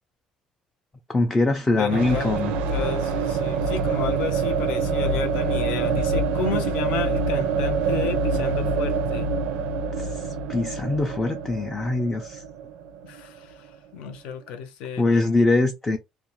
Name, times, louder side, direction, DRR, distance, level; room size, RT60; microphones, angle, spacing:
voice 1, 1.1-2.5 10.0-12.4 15.0-16.0, left 2 dB, 15° left, 0.4 m, -23 dB
voice 2, 1.7-2.4 2.7-9.3 13.0-15.3, left 6 dB, 75° left, 0.7 m, -32 dB
sound 1, 1.9-13.7, right 4 dB, 85° right, 0.5 m, -26 dB
2.3 x 2.3 x 3.0 m
cardioid pair, 165°, 2 cm